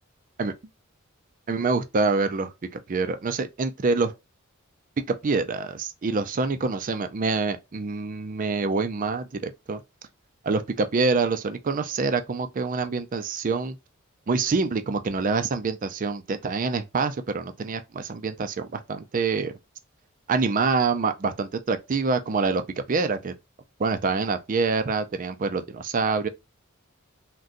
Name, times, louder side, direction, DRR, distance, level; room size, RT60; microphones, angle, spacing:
voice 1, 1.5-4.1 5.1-9.8 10.4-13.8 14.3-19.5 20.3-22.6 22.9-23.3 23.8-26.3, right 4 dB, 40° right, 0.4 m, -26 dB
3.7 x 2.2 x 2.5 m
head